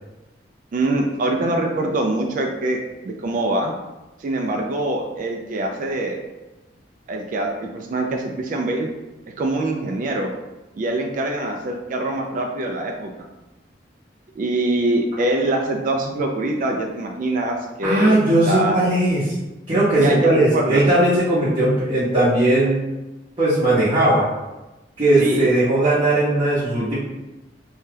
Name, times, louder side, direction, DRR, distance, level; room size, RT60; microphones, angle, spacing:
voice 1, 0.7-3.7 4.2-6.2 7.1-8.9 9.4-10.3 10.7-13.3 14.4-18.2 18.5-18.8 20.0-20.8 25.2-25.5, right 2 dB, 50° right, 2 dB, 0.3 m, -24 dB
voice 2, 17.8-19.3 19.7-22.8 23.4-24.3 25.0-27.0, right 1 dB, 30° right, -10 dB, 0.7 m, -18 dB
2.7 x 2.2 x 3.3 m, 1.1 s
head